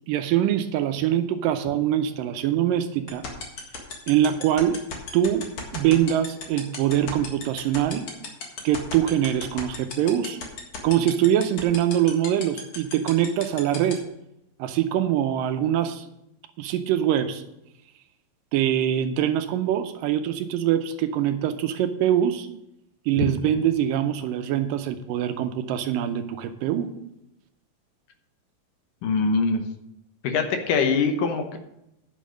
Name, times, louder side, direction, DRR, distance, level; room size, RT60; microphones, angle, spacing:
voice 1, 0.1-3.2 4.1-4.8 5.1-8.1 8.6-10.4 10.8-14.0 14.6-16.1 16.6-17.4 18.5-22.5 23.1-26.9, right 10 dB, 80° right, 9 dB, 2.2 m, -23 dB
sound 1, 3.1-13.9, left 6 dB, 50° left, 2.6 m, -33 dB
voice 2, 29.0-29.6 30.2-31.6, left 4 dB, 70° left, 6 dB, 2.5 m, -23 dB
10.0 x 6.4 x 6.3 m, 0.83 s
omnidirectional pair, 4.1 m